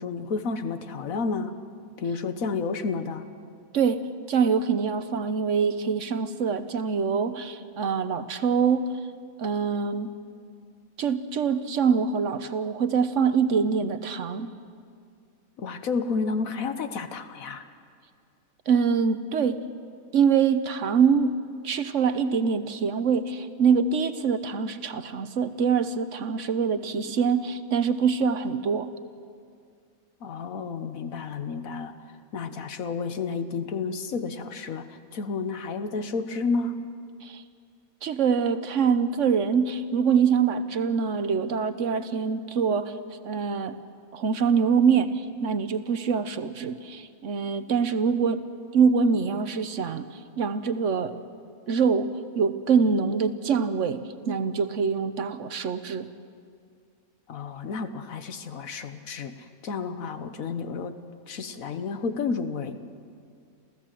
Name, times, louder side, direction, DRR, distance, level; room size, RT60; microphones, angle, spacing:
voice 1, 0.0-1.5 2.0-3.3 15.6-17.6 30.2-32.0 32.3-36.8 57.3-61.0 61.3-62.8, left 4 dB, 70° left, 9 dB, 1.4 m, -31 dB
voice 2, 4.3-8.9 9.4-10.1 11.0-14.5 18.7-19.6 20.1-21.4 21.6-28.9 37.2-37.4 38.0-42.9 43.2-43.7 44.1-48.4 48.7-50.1 50.4-51.1 51.7-56.1, right 6 dB, 60° right, 11 dB, 1.1 m, -24 dB
28.0 x 15.5 x 7.5 m, 2.3 s
omnidirectional pair, 1.5 m